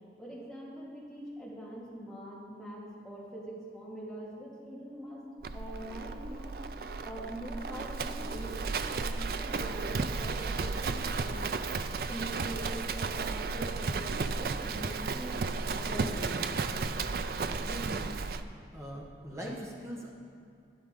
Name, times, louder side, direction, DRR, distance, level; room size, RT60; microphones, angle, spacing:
voice 1, 0.2-5.2 5.5-6.6 7.0-11.4 11.9-15.4 15.7-16.4, right 1 dB, ahead, -8 dB, 2.3 m, -43 dB
Livestock farm animals working animals, 5.4-18.4, right 4 dB, 55° right, 0.4 m, -34 dB
voice 2, 17.5-18.2 18.7-20.1, equal, 15° right, -3 dB, 1.4 m, -41 dB
12.0 x 10.5 x 3.8 m, 2.4 s
head